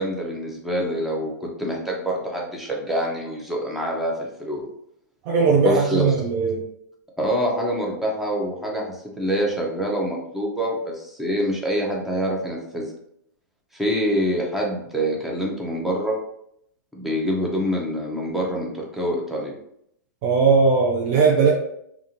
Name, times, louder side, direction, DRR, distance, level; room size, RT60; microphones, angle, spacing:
voice 1, 0.0-4.1 4.4-4.7 5.6-6.1 7.2-12.9 13.7-16.2 16.9-19.5, equal, ahead, -2 dB, 0.7 m, -26 dB
voice 2, 5.3-6.6 20.2-21.5, right 4 dB, 45° right, -2 dB, 0.5 m, -18 dB
2.4 x 2.4 x 2.9 m, 0.73 s
hypercardioid pair, 120°, 10 cm